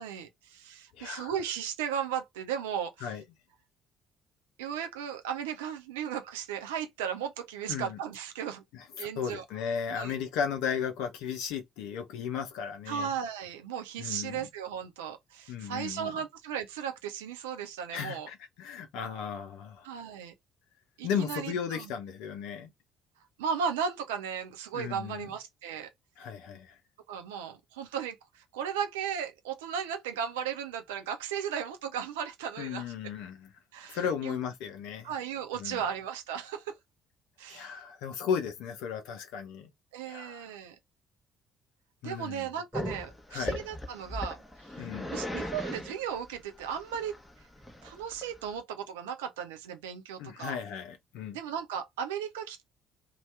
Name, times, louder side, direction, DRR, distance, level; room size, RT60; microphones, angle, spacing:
voice 1, 0.0-3.1 4.6-8.6 8.9-9.4 9.9-10.1 12.9-18.3 19.8-20.3 21.0-21.9 23.4-25.9 27.1-32.9 33.7-34.4 35.0-36.7 37.4-37.7 39.9-40.8 42.0-44.4 45.1-47.1 47.8-50.6 51.3-52.6, right 8 dB, 70° right, 0.5 m, -36 dB
voice 2, 0.9-1.3 3.0-3.2 7.7-8.0 8.7-13.1 14.0-14.5 15.5-16.1 17.9-19.9 21.0-22.7 24.7-25.3 26.2-26.8 32.6-33.5 33.9-35.1 35.6-35.8 37.5-39.7 40.0-40.5 42.0-42.5 43.3-43.7 44.8-45.2 50.2-51.4, left 7 dB, 65° left, 0.5 m, -35 dB
Growling, 42.7-48.6, left 1 dB, 5° left, 0.9 m, -38 dB
2.7 x 2.2 x 3.1 m
figure-of-eight pair, 50°, 0 cm